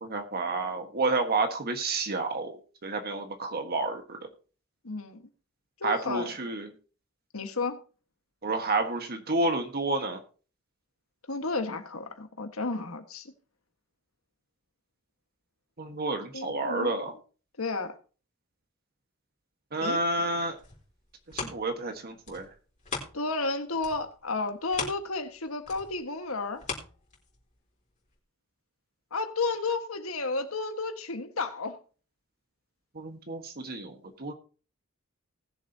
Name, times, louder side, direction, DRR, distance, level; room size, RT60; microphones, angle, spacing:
voice 1, 0.0-2.6 2.8-4.3 5.8-6.7 8.4-10.2 15.8-17.1 19.7-20.6 21.3-22.5 32.9-34.3, right 2 dB, 45° right, 1.5 m, -30 dB
voice 2, 4.8-5.3 5.8-6.3 7.3-7.8 11.3-13.3 16.3-17.0 17.6-18.0 19.8-20.0 23.1-26.6 29.1-31.8, left 3 dB, 70° left, 1.6 m, -32 dB
sound 1, 20.3-23.5 23.8-27.6 28.1-28.2, left 4 dB, 35° left, 3.9 m, -40 dB
19.5 x 7.3 x 2.8 m
head